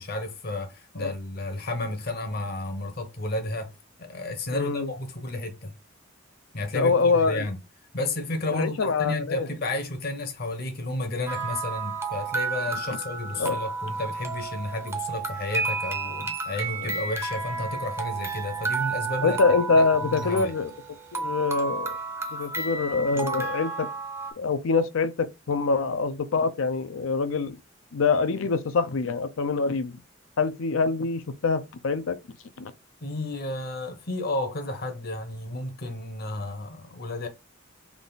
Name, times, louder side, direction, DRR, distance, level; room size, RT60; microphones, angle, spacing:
voice 1, 0.0-3.7 4.0-5.7 6.5-7.6 7.9-19.4 19.7-20.5 33.0-37.3, left 2 dB, 50° left, 0.8 m, -32 dB
voice 2, 4.5-4.9 6.7-7.4 8.5-9.5 13.4-13.6 16.8-16.9 19.2-20.7 21.1-21.9 22.3-23.9 24.4-27.5 27.9-29.9 30.4-32.2 32.6-32.7, left 4 dB, 85° left, 0.5 m, -25 dB
sound 1, 11.3-24.3, right 4 dB, 15° right, 0.5 m, -32 dB
3.6 x 2.4 x 3.9 m
head